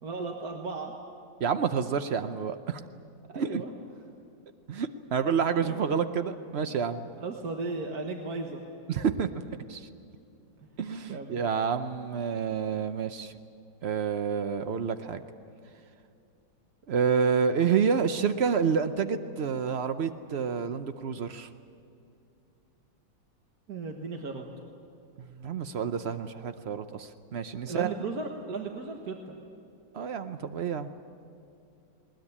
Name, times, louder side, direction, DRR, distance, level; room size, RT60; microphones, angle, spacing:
voice 1, 0.0-0.9 3.3-3.7 5.6-6.0 7.2-8.6 10.6-10.7 11.1-11.4 23.7-24.5 27.6-29.4, right 3 dB, 55° right, 2 dB, 1.8 m, -36 dB
voice 2, 1.4-2.8 3.3-3.6 4.7-7.1 8.9-9.3 9.7-9.9 10.8-13.3 13.8-15.2 16.9-21.5 25.3-27.9 29.9-30.9, right 6 dB, 85° right, 9 dB, 0.5 m, -28 dB
20.5 x 20.0 x 9.8 m, 2.6 s
omnidirectional pair, 2.1 m